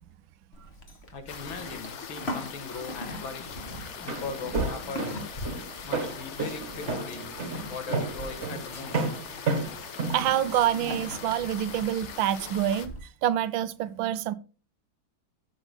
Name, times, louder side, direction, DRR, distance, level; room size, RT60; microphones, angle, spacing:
Livestock farm animals working animals, 0.5-13.0, equal, 35° left, 1.7 m, -41 dB
voice 1, 1.1-5.2 5.8-7.4 7.7-9.1, left 4 dB, 75° left, 2.3 m, -40 dB
sound 1, 1.3-12.9, left 7 dB, 50° left, 0.9 m, -42 dB
Walk footsteps, 3.9-11.0, right 4 dB, 40° right, 1.5 m, -32 dB
voice 2, 10.1-13.0 13.2-14.3, right 11 dB, 80° right, 1.4 m, -26 dB
14.0 x 7.1 x 2.2 m
omnidirectional pair, 2.2 m